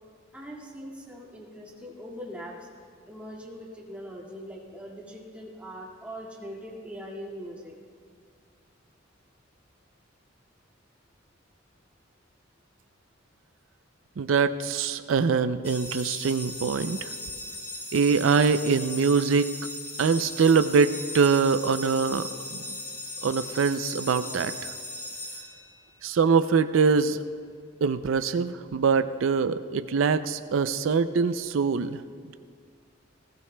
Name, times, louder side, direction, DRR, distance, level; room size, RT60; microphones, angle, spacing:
voice 1, 0.3-2.7 3.1-7.7, equal, 5° right, -4 dB, 2.0 m, -41 dB
voice 2, 14.2-17.1 17.9-19.5 20.0-22.3 22.5-22.6 23.2-24.5 26.0-27.2 27.8-32.0, right 5 dB, 75° right, 11 dB, 0.4 m, -23 dB
sound 1, 15.6-26.1, left 2 dB, 10° left, 0.9 m, -38 dB
19.5 x 15.5 x 2.2 m, 2.1 s
head